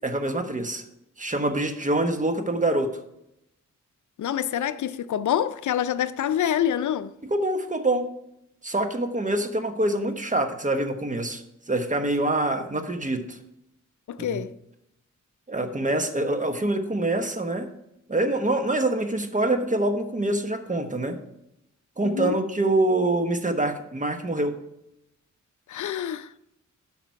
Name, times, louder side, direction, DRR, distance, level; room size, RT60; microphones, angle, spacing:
voice 1, 0.0-0.8 1.2-2.9 7.3-8.1 8.6-13.4 14.3-14.4 15.5-17.7 18.1-21.2 22.0-24.6, right 2 dB, 25° right, 1.2 m, -25 dB
voice 2, 4.2-7.1 14.1-14.6 22.0-22.4 25.7-26.4, left 10 dB, 70° left, 0.5 m, -26 dB
10.0 x 5.9 x 4.7 m
cardioid pair, 70°, 31 cm